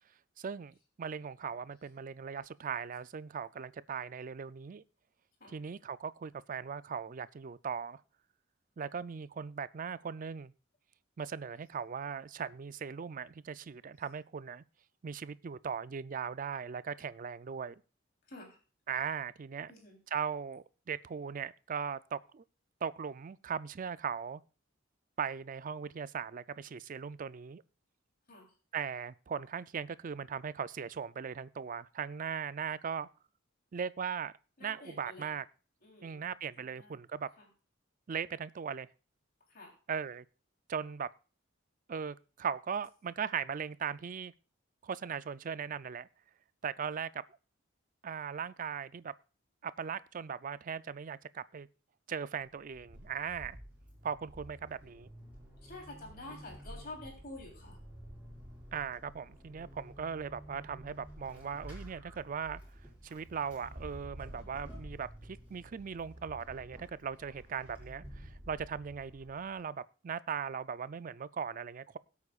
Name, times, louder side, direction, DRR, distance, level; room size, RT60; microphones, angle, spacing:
voice 1, 0.4-4.8 5.5-8.0 8.8-10.5 11.2-14.6 15.0-17.8 18.9-19.7 20.1-22.4 22.8-24.4 25.2-27.6 28.7-33.1 33.7-34.3 34.6-35.5 36.0-37.3 38.1-38.9 39.9-40.2 40.7-41.1 41.9-44.3 44.8-46.1 46.6-47.2 48.0-49.1 49.6-51.7 52.1-53.6 54.0-55.1 58.7-62.6 63.0-72.0, right 7 dB, 45° right, 0.4 m, -39 dB
voice 2, 34.6-35.4 35.8-37.0 37.4-37.5 39.5-39.7 55.6-57.8, left 2 dB, 50° left, 3.4 m, -49 dB
Vehicle / Accelerating revving vroom / Squeak, 52.5-69.6, equal, 10° right, 6.0 m, -51 dB
21.5 x 8.4 x 2.4 m
head